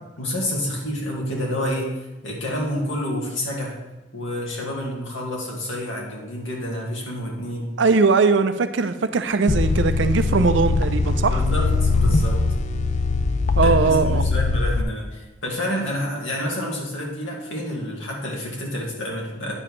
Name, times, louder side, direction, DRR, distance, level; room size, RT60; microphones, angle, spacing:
voice 1, 0.2-1.9 2.2-3.8 4.1-7.7 11.3-12.4 13.6-19.6, left 1 dB, 80° left, -2 dB, 2.1 m, -28 dB
voice 2, 7.8-11.4 13.6-14.3, right 4 dB, 70° right, 10 dB, 0.5 m, -20 dB
sound 1, 9.5-14.8, left 3 dB, 40° left, 0.4 m, -21 dB
9.6 x 7.0 x 3.2 m, 1.0 s
head